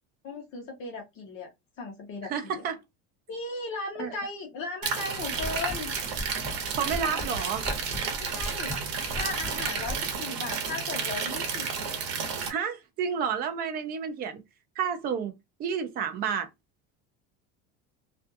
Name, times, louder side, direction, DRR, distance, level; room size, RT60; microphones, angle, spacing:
voice 1, 0.2-1.5 1.8-2.6 3.3-5.9 8.2-8.7 9.1-11.7, left 3 dB, 40° left, 0.7 m, -36 dB
voice 2, 2.3-2.8 4.0-4.2 6.7-7.7 12.5-14.4 14.8-15.3 15.6-16.5, right 7 dB, 30° right, 0.4 m, -30 dB
sound 1, 4.8-12.5, right 6 dB, 75° right, 0.9 m, -32 dB
sound 2, 5.1-10.2, left 1 dB, 10° right, 1.2 m, -39 dB
2.4 x 2.3 x 2.5 m
cardioid pair, 155°, 31 cm